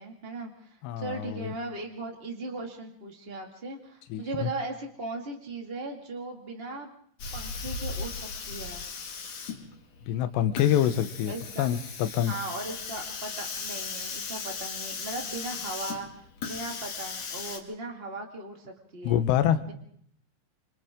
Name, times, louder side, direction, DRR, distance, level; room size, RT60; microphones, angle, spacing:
voice 1, 0.0-6.9 7.3-8.8 11.3-11.7 12.3-16.1 16.4-19.2 19.7-19.8, right 2 dB, 65° right, 2 dB, 0.5 m, -38 dB
voice 2, 0.8-1.5 4.1-4.5 10.1-12.3 19.0-19.6, left 10 dB, 75° left, 9 dB, 3.0 m, -26 dB
Hiss, 7.2-17.6, left 5 dB, 50° left, 3.2 m, -37 dB
28.5 x 26.0 x 3.7 m, 0.64 s
omnidirectional pair, 5.3 m